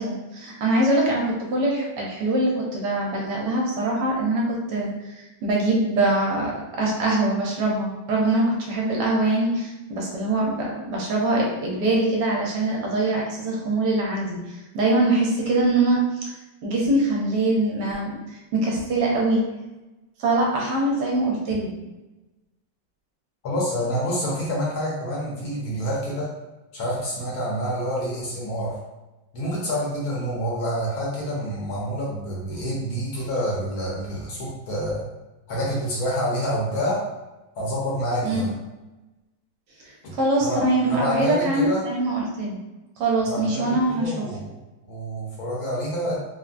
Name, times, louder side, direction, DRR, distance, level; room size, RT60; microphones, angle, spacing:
voice 1, 0.0-16.3 16.6-19.4 20.2-21.7 38.2-38.5 39.8-42.6 43.0-44.3, right 2 dB, 75° right, -2 dB, 1.2 m, -23 dB
voice 2, 23.4-26.3 26.7-28.7 29.3-35.0 35.5-37.0 37.6-38.5 40.0-40.1 40.4-40.6 40.9-41.8 43.3-44.5 44.9-46.2, equal, 65° left, -5 dB, 1.1 m, -27 dB
3.4 x 2.1 x 2.4 m, 1.1 s
omnidirectional pair, 1.9 m